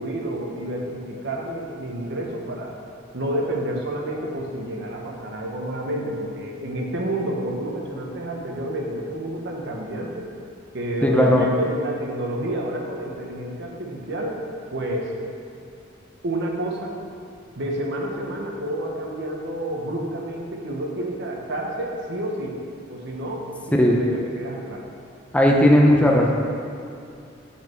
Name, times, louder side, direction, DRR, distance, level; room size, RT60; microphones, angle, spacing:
voice 1, 0.0-2.8 3.1-10.3 10.7-14.4 14.7-15.2 16.2-16.9 17.6-22.6 22.9-24.8, right 1 dB, 60° right, 0 dB, 1.2 m, -29 dB
voice 2, 11.0-11.4 23.8-24.0 25.3-26.3, left 1 dB, 5° left, -1 dB, 0.7 m, -16 dB
8.4 x 5.8 x 4.5 m, 2.5 s
head